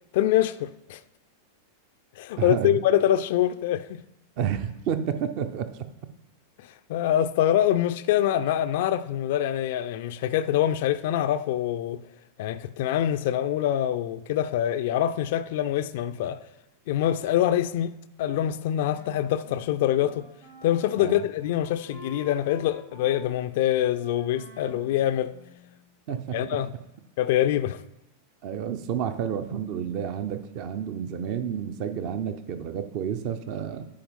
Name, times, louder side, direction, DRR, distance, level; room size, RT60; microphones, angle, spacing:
voice 1, 0.1-1.0 2.2-4.0 6.6-12.0 12.4-16.5 16.9-20.3 20.6-25.3 26.3-26.7 27.2-27.8, left 11 dB, 50° left, 0.3 m, -25 dB
voice 2, 2.4-2.8 4.4-5.8 21.0-21.2 26.1-26.6 28.4-33.9, right 8 dB, 45° right, 0.6 m, -30 dB
Wind instrument woodwind instrument, 18.4-25.9, left 2 dB, 80° right, 2.4 m, -49 dB
10.0 x 4.5 x 5.2 m
figure-of-eight pair, 90°, 0 cm